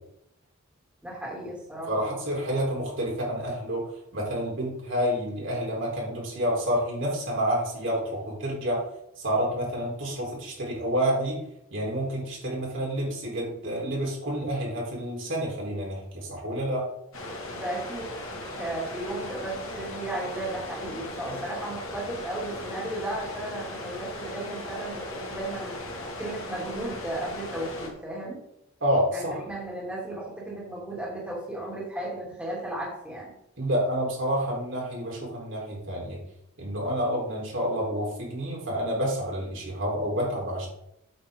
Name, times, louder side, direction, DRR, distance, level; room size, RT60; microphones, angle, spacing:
voice 1, 1.0-2.2 17.5-18.1 18.4-28.4 29.1-33.3, right 1 dB, 5° right, -6 dB, 2.7 m, -35 dB
voice 2, 1.9-8.9 9.2-11.4 11.7-16.9 21.3-21.4 28.8-29.4 33.6-36.2 36.6-40.7, equal, 55° right, -3 dB, 3.8 m, -29 dB
sound 1, 17.1-27.9, left 1 dB, 70° left, 2.1 m, -38 dB
8.8 x 7.9 x 3.8 m, 0.78 s
head